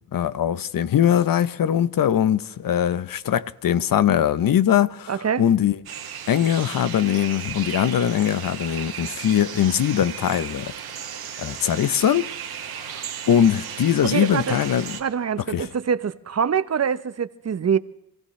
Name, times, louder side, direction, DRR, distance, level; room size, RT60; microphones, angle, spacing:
voice 1, 0.1-5.8 6.3-10.7 11.4-12.3 12.7-14.9 15.5-15.7, left 9 dB, 65° left, 0.8 m, -21 dB
voice 2, 5.1-5.4 14.0-14.6 15.0-17.8, right 7 dB, 45° right, 0.8 m, -24 dB
sound 1, 5.9-15.0, right 8 dB, 80° right, 2.0 m, -35 dB
26.5 x 16.0 x 3.2 m
cardioid pair, 75°, 37 cm